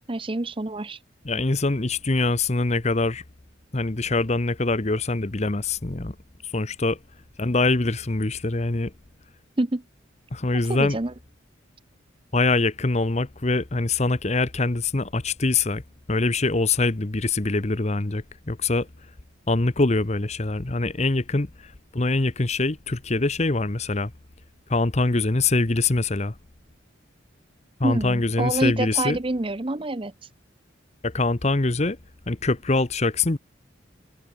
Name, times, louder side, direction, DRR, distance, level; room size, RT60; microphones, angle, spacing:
voice 1, 0.1-1.0 9.6-9.8 10.7-11.1 27.8-30.1, right 2 dB, 25° right, 0.7 m, -26 dB
voice 2, 1.2-3.2 3.7-6.1 6.5-7.0 7.4-8.9 10.3-11.0 12.3-15.8 16.1-18.9 19.5-24.1 24.7-26.3 27.8-29.2 31.0-32.0 32.3-33.4, left 3 dB, 35° left, 0.9 m, -24 dB
head